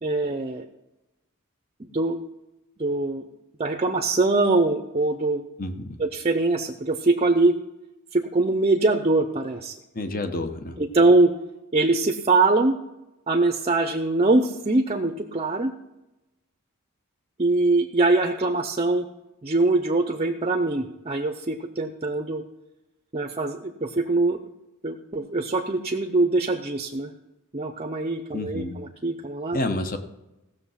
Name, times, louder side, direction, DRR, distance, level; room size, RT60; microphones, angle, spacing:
voice 1, 0.0-0.7 1.9-2.2 2.8-3.2 3.6-5.4 6.0-7.5 8.1-9.7 10.8-11.3 11.7-12.7 13.3-15.7 17.4-19.1 19.4-22.4 23.1-24.4 24.8-27.1 27.5-29.6, right 2 dB, 30° right, 7 dB, 0.6 m, -23 dB
voice 2, 5.6-6.0 9.9-10.8 28.3-28.8 29.5-30.0, left 2 dB, 40° left, 7 dB, 1.0 m, -29 dB
16.0 x 6.6 x 5.7 m, 0.98 s
head